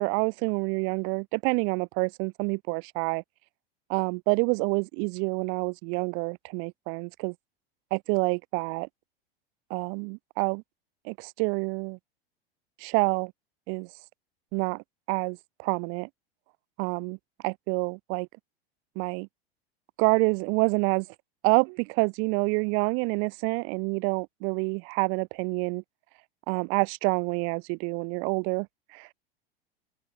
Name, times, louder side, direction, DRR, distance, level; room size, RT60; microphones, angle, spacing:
voice 1, 0.0-3.2 3.9-7.3 7.9-8.9 9.7-10.6 11.0-12.0 12.8-13.3 13.7-13.9 14.5-16.1 16.8-17.2 17.4-18.3 19.0-19.3 20.0-21.1 21.4-25.8 26.5-28.7 28.9-29.1, right 38 dB, 45° right, 0.8 m, -27 dB
figure-of-eight pair, 85°, 29 cm